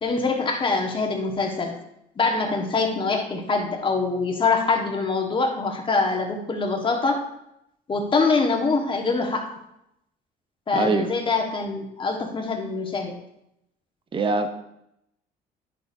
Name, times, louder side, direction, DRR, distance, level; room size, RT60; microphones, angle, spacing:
voice 1, 0.0-1.8 2.2-7.2 7.9-9.5 10.7-13.2, left 4 dB, 30° left, 2 dB, 1.4 m, -24 dB
voice 2, 10.7-11.1 14.1-14.5, right 3 dB, 30° right, 7 dB, 0.8 m, -23 dB
10.5 x 6.6 x 2.7 m, 0.81 s
cardioid pair, 110°, 17 cm